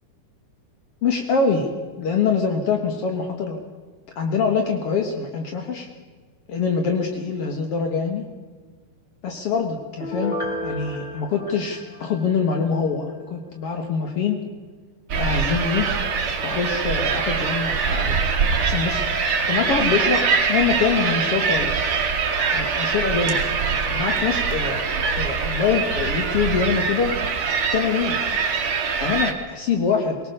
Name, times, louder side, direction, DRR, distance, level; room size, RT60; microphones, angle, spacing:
voice 1, 1.0-1.7 2.0-3.6 4.1-5.9 6.5-8.2 9.2-10.4 10.6-14.4 15.1-15.9 16.4-18.2 18.6-19.0 19.5-21.9 22.5-27.2 27.7-28.2 29.0-30.2, left 5 dB, 70° left, 4 dB, 1.4 m, -24 dB
Piano, 10.0-12.7 13.1-13.2, left 1 dB, 10° left, 3.1 m, -32 dB
sound 1, 15.1-29.3, right 5 dB, 40° right, 2.3 m, -23 dB
23.0 x 19.0 x 6.7 m, 1.5 s
omnidirectional pair, 5.0 m